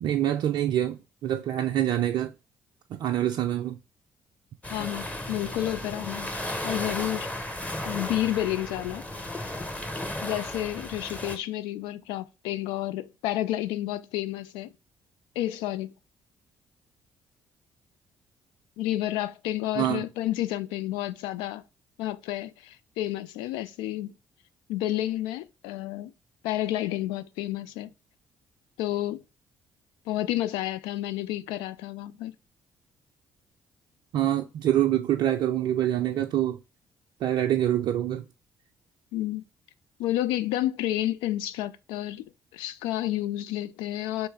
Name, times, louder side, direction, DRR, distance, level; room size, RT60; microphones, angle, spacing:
voice 1, 0.0-2.3 2.9-3.8 19.8-20.0 34.1-36.6 37.2-38.2, right 12 dB, 60° right, 0.4 m, -25 dB
sound 1, 4.6-11.4, left 1 dB, 15° left, 0.9 m, -35 dB
voice 2, 4.7-6.3 6.6-7.3 7.8-9.0 10.2-14.7 15.4-15.9 18.8-21.6 22.0-24.1 24.7-26.1 26.4-27.9 28.8-29.2 30.1-32.3 39.1-39.4 40.0-44.3, left 14 dB, 70° left, 0.4 m, -30 dB
3.1 x 3.1 x 4.7 m
figure-of-eight pair, 45°, 8 cm